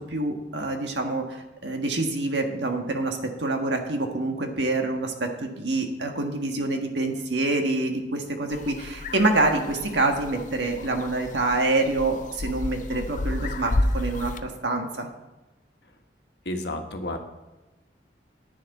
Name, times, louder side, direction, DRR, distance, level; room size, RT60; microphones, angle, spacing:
voice 1, 0.1-15.1, right 2 dB, 85° right, 3 dB, 1.6 m, -26 dB
sound 1, 8.5-14.4, left 2 dB, 45° left, 0.5 m, -31 dB
voice 2, 16.4-17.2, left 1 dB, 70° left, 4 dB, 1.4 m, -31 dB
10.5 x 9.7 x 4.2 m, 1.1 s
head